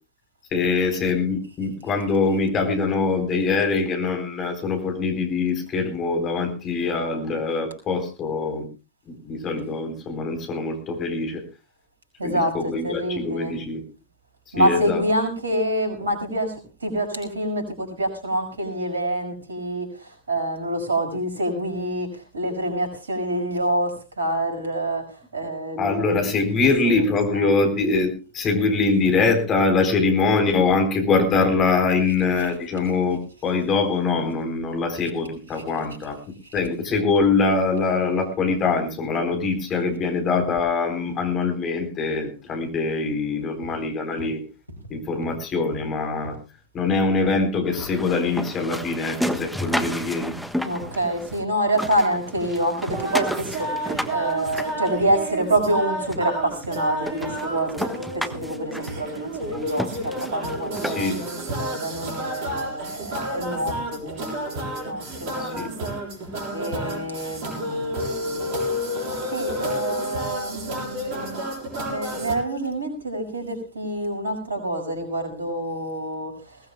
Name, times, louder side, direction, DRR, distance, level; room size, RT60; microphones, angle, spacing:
voice 1, 0.5-8.6 9.1-11.4 12.2-13.8 14.6-15.0 25.8-36.2 36.5-44.4 44.9-46.4 46.7-50.3 60.8-61.2 65.4-65.7, left 4 dB, 30° left, 5 dB, 4.0 m, -23 dB
voice 2, 12.2-13.6 14.5-25.0 25.3-27.0 27.3-27.5 35.5-35.6 36.5-36.6 50.6-65.7 66.5-71.4 71.8-76.6, right 1 dB, 70° right, 4 dB, 5.8 m, -27 dB
sound 1, 43.6-43.8 44.2-44.3 44.7-45.0 45.2-45.4 45.7-45.9 46.2-46.4 46.8-46.9 47.3-47.4 47.8-48.0 48.3-48.4 48.8-49.0 49.3-49.5 49.8-50.0 50.3-50.5 50.8-51.0 51.3-51.5 51.8-52.6 52.9-53.0 53.4-53.6 53.9-54.1 54.5-54.7 55.0-55.2 55.6-55.8 56.1-56.2 56.6-56.8 57.2-57.4 57.8-58.0 58.3-58.5 58.9-59.0 59.4-59.7 59.9-60.2 60.4-60.6 61.0-61.2 61.5-61.7 62.0-62.2, right 1 dB, 85° left, 5.3 m, -39 dB
sound 2, 47.7-51.4 51.7-55.4 56.1-56.2 56.6-56.7 57.0-61.3, equal, ahead, 1.3 m, -32 dB
sound 3, 52.9-72.4, equal, 45° right, 7.1 m, -31 dB
21.0 x 18.5 x 2.3 m, 0.31 s
figure-of-eight pair, 90°, 0 cm